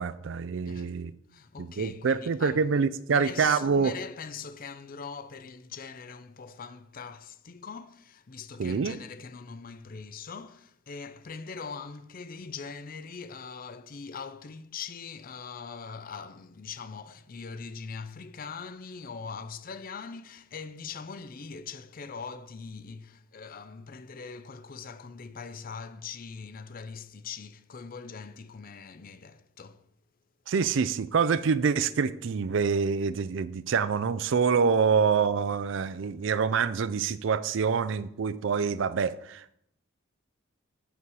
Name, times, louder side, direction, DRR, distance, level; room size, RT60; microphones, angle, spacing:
voice 1, 0.0-1.1 1.6-3.9 8.6-9.0 30.5-39.5, right 5 dB, 65° right, 0.4 m, -26 dB
voice 2, 1.3-2.7 3.1-29.8, left 5 dB, 45° left, 0.5 m, -42 dB
8.2 x 7.0 x 4.8 m
head